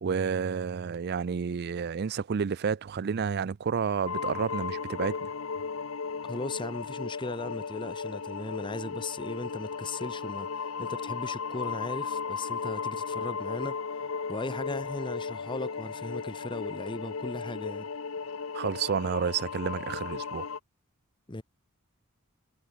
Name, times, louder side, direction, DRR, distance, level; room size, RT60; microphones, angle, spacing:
voice 1, 0.0-5.3 18.5-20.5, right 6 dB, 50° right, 0.4 m, -30 dB
sound 1, 4.1-20.6, left 5 dB, 65° left, 0.8 m, -35 dB
voice 2, 6.2-13.8 14.3-17.9 21.3-21.4, left 2 dB, 20° left, 0.9 m, -37 dB
head